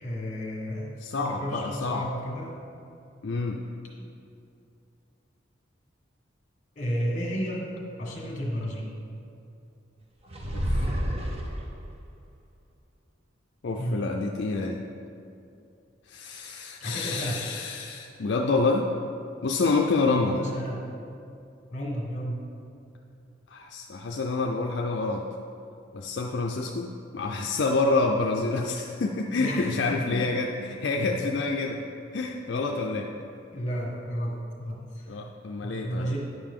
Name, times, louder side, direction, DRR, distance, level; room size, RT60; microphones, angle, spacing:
voice 1, 0.0-2.6 4.0-4.1 6.7-7.6 8.0-8.9 13.8-14.0 16.8-17.4 20.1-20.8 21.7-22.4 29.3-30.3 31.0-31.1 33.5-35.1 35.6-36.2, equal, 40° left, -2 dB, 1.6 m, -32 dB
voice 2, 1.0-2.1 3.2-3.6 10.5-10.9 13.6-14.8 16.1-18.9 19.4-20.4 23.5-25.2 25.9-31.8 32.1-33.1 35.1-36.2, left 3 dB, 60° left, 1 dB, 0.4 m, -28 dB
sound 1, 10.3-12.0, equal, 30° right, 0.7 m, -29 dB
9.9 x 6.8 x 3.7 m, 2.6 s
head